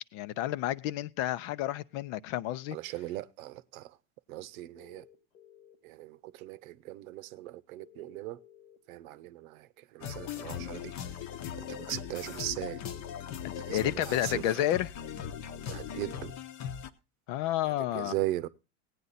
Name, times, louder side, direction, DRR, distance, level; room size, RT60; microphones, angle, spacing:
voice 1, 0.0-2.8 13.4-14.9 17.3-18.1, left 13 dB, 60° left, 0.7 m, -31 dB
voice 2, 2.7-4.0 4.3-5.1 5.8-8.4 8.9-11.2 11.6-12.8 13.6-14.6 15.7-16.3 17.6-18.5, right 15 dB, 75° right, 0.8 m, -39 dB
sound 1, 4.7-5.7 7.8-8.8, left 10 dB, 90° left, 1.8 m, -57 dB
sound 2, 10.0-16.9, left 9 dB, 40° left, 0.9 m, -39 dB
16.5 x 9.4 x 4.1 m
supercardioid pair, 105°, 42 cm